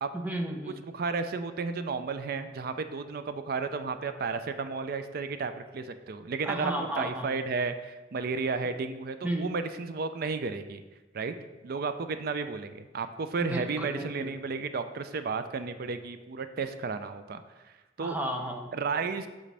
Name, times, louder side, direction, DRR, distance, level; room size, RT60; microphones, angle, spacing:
voice 1, 0.1-0.8 6.4-7.3 9.2-9.5 13.4-14.3 18.0-18.7, right 1 dB, 10° right, 2 dB, 0.6 m, -33 dB
voice 2, 0.8-10.8 11.1-11.3 11.6-17.4 18.0-18.2 18.7-19.3, right 4 dB, 55° right, 10 dB, 0.4 m, -33 dB
7.4 x 5.2 x 3.3 m, 1.1 s
head